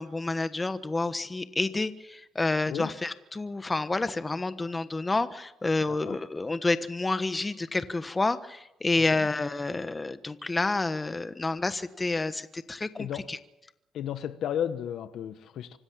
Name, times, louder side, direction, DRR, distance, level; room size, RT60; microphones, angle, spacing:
voice 1, 0.0-13.4, left 3 dB, 20° left, 12 dB, 1.2 m, -29 dB
voice 2, 8.9-9.3 13.0-13.3 13.9-15.8, left 9 dB, 75° left, 12 dB, 1.2 m, -34 dB
25.5 x 13.0 x 8.8 m, 0.92 s
cardioid pair, 90°, 0 cm